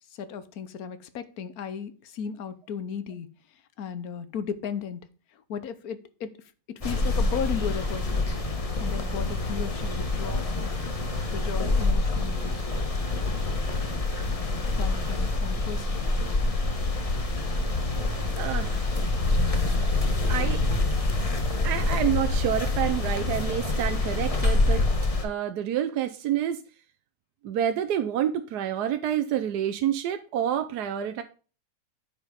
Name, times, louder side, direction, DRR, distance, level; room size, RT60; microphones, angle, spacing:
voice 1, 0.1-3.3 3.8-5.0 5.3-6.4 6.7-8.3 8.8-10.8 11.3-12.5 14.8-16.0, left 7 dB, 60° left, 1.2 m, -35 dB
sound 1, 6.8-25.2, left 2 dB, 25° left, 0.9 m, -26 dB
voice 2, 18.4-18.8 19.4-19.9 20.3-20.6 21.6-24.8 25.2-26.6 27.4-31.2, right 10 dB, 70° right, 1.1 m, -28 dB
9.2 x 5.3 x 5.0 m
omnidirectional pair, 2.0 m